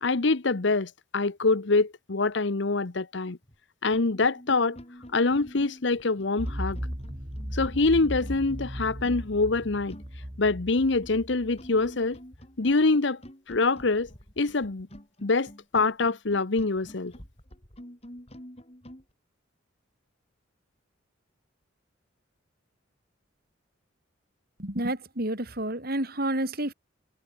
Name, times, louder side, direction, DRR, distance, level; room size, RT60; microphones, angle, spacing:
voice 1, 0.0-3.4 3.8-4.8 5.1-6.8 7.5-10.0 10.4-12.2 12.6-13.2 13.5-14.1 14.4-14.9 15.2-17.1, left 3 dB, 60° left, 0.9 m, -25 dB
sound 1, 3.4-3.6 3.9-19.0, equal, 30° left, 5.4 m, -48 dB
sound 2, 6.4-12.1, equal, 30° right, 5.5 m, -36 dB
voice 2, 24.6-26.7, right 1 dB, 50° right, 4.7 m, -29 dB
head